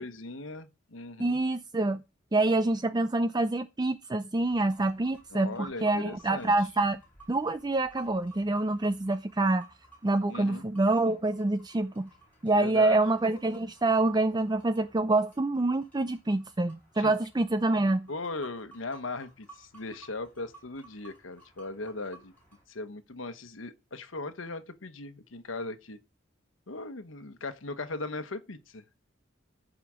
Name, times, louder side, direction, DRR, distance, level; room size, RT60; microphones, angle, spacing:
voice 1, 0.0-1.4 5.3-6.5 10.3-10.6 12.6-13.0 17.0-17.1 18.1-22.3 22.7-26.0 26.7-28.8, left 2 dB, 90° left, 1.1 m, -38 dB
voice 2, 1.2-2.0 2.3-7.0 7.3-9.7 10.0-12.1 12.4-18.1, right 2 dB, 20° right, 0.5 m, -26 dB
sound 1, 4.3-22.6, right 3 dB, 10° left, 7.9 m, -57 dB
14.0 x 5.1 x 7.3 m
head